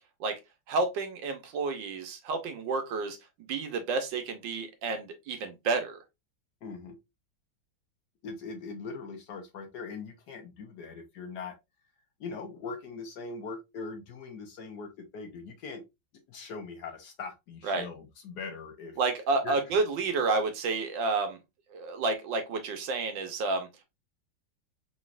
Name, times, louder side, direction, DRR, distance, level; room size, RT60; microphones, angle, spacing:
voice 1, 0.7-3.2 3.5-6.0 17.6-17.9 19.0-21.4 21.7-23.8, right 3 dB, 70° right, 1.5 m, -30 dB
voice 2, 6.6-7.0 8.2-11.6 12.2-15.8 16.3-19.0 19.4-19.6, left 4 dB, 65° left, 1.2 m, -41 dB
4.2 x 4.0 x 2.4 m
omnidirectional pair, 2.2 m